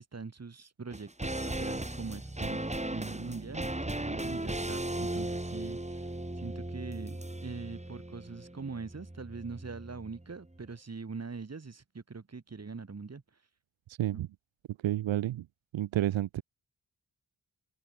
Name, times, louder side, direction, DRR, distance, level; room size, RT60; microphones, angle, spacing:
voice 1, 0.0-6.1 6.4-13.2 14.1-14.2, right 4 dB, 35° right, 1.6 m, -43 dB
sound 1, 0.9-10.3 10.5-10.6, right 1 dB, 15° right, 4.3 m, -37 dB
voice 2, 14.8-15.4 15.7-16.4, right 14 dB, 80° right, 0.6 m, -30 dB
cardioid pair, 60°, 45 cm